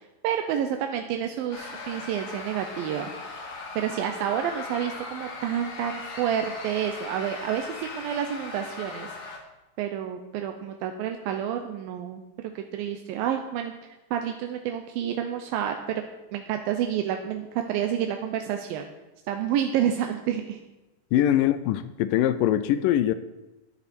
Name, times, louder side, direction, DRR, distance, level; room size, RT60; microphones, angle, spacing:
voice 1, 0.2-3.1 3.8-9.3 9.8-13.7 14.1-16.0 16.3-18.9 19.3-20.6, right 9 dB, 85° right, 5 dB, 2.5 m, -29 dB
sound 1, 1.5-9.4, left 3 dB, 50° left, 2.7 m, -39 dB
voice 2, 21.1-23.1, left 12 dB, 80° left, 13 dB, 2.2 m, -22 dB
14.0 x 10.5 x 4.3 m, 1.0 s
omnidirectional pair, 4.0 m